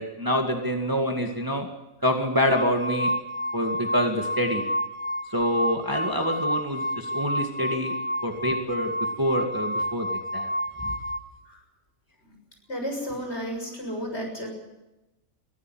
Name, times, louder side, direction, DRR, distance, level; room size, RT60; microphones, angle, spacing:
voice 1, 0.0-1.7 2.0-3.1 3.5-4.6 5.3-8.0 8.2-10.1 10.3-10.5 10.8-10.9, equal, 15° right, 3 dB, 2.1 m, -26 dB
sound 1, 2.3-11.2, equal, 80° left, 1.7 m, -30 dB
voice 2, 12.7-14.5, equal, 50° left, 2 dB, 7.1 m, -32 dB
22.5 x 15.0 x 9.1 m, 0.98 s
omnidirectional pair, 1.4 m